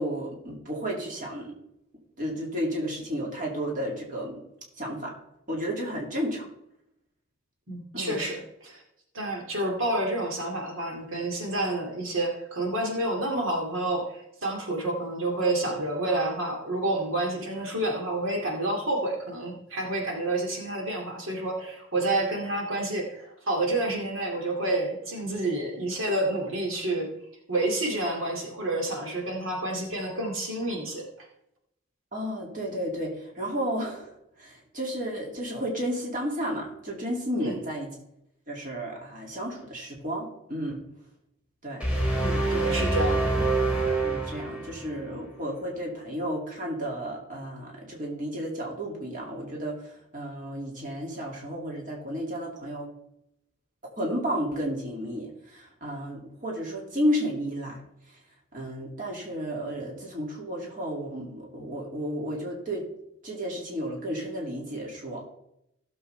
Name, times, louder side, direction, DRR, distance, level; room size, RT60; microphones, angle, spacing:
voice 1, 0.0-1.5 2.2-4.4 4.8-5.2 5.5-6.5 7.9-8.2 32.1-37.9 38.5-40.8 41.6-41.8 42.3-42.9 43.3-43.5 44.0-52.9 54.0-57.8 58.5-62.9 63.2-65.2, equal, 40° right, -1 dB, 2.4 m, -32 dB
voice 2, 7.7-8.8 9.1-27.1 27.5-31.0 37.4-37.6 42.1-43.3, right 2 dB, 75° right, 0 dB, 2.4 m, -29 dB
sound 1, 41.8-45.0, right 2 dB, 5° right, 3.0 m, -26 dB
16.0 x 7.1 x 3.3 m, 0.80 s
head